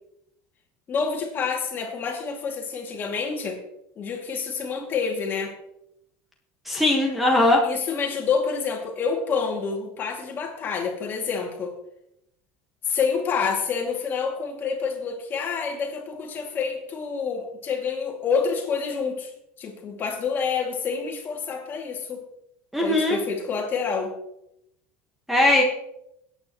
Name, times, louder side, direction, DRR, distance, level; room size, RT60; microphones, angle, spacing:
voice 1, 0.9-3.6 4.0-5.5 7.6-11.7 12.9-19.3 19.6-22.2 22.8-24.1, left 5 dB, 35° left, 1 dB, 2.4 m, -28 dB
voice 2, 6.6-7.6 22.7-23.2 25.3-25.6, left 2 dB, ahead, 0 dB, 1.4 m, -19 dB
17.0 x 9.0 x 3.0 m, 0.80 s
supercardioid pair, 135°, 6 cm